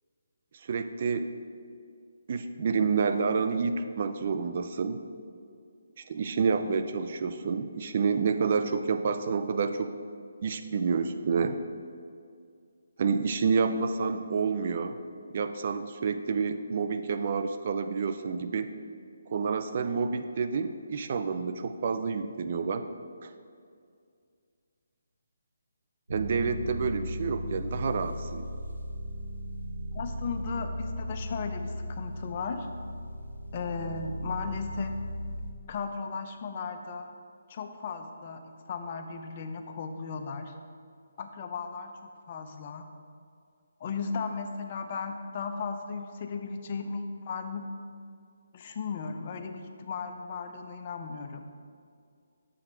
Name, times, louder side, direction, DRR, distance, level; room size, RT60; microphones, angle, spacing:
voice 1, 0.5-1.3 2.3-5.0 6.0-9.9 10.4-11.6 13.0-15.0 15.3-18.7 19.3-22.8 23.2-23.3 26.1-28.5, right 5 dB, 45° right, 9 dB, 0.4 m, -29 dB
sound 1, 26.1-35.5, equal, 80° right, 0.8 m, -37 dB
voice 2, 29.9-32.7 33.5-35.0 35.7-37.1 37.5-38.4 38.7-40.5 41.2-42.9 43.8-47.7 48.5-51.4, left 5 dB, 40° left, 6 dB, 0.5 m, -36 dB
7.0 x 4.9 x 4.3 m, 2.3 s
figure-of-eight pair, 150°, 0 cm